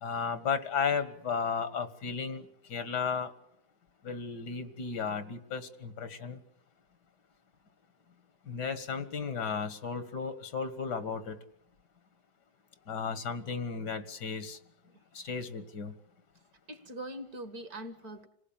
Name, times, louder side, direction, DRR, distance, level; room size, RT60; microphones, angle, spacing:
voice 1, 0.0-2.4 2.7-3.3 4.0-6.4 8.5-11.4 12.9-14.6 15.1-15.9, left 6 dB, 90° left, 2.2 m, -34 dB
voice 2, 16.7-18.3, right 1 dB, 65° right, 2.2 m, -42 dB
27.0 x 18.5 x 8.8 m
omnidirectional pair, 1.7 m